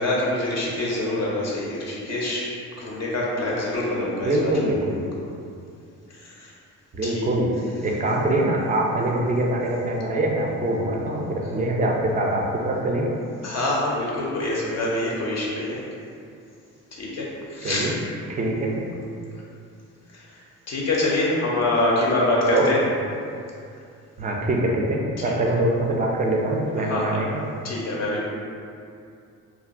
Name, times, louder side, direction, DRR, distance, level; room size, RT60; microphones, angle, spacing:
voice 1, 0.0-2.5 2.8-4.5 6.2-6.5 7.0-7.3 13.4-15.8 16.9-17.9 20.1-20.2 20.7-22.8 25.2-25.3 26.9-27.2 27.6-28.2, left 1 dB, 45° left, -4 dB, 0.5 m, -25 dB
voice 2, 4.2-5.1 6.9-7.5 7.8-13.1 17.6-17.9 18.3-18.9 22.5-22.9 24.2-27.4, right 1 dB, 20° right, -1 dB, 0.4 m, -24 dB
2.2 x 2.2 x 2.4 m, 2.4 s
hypercardioid pair, 50°, 40 cm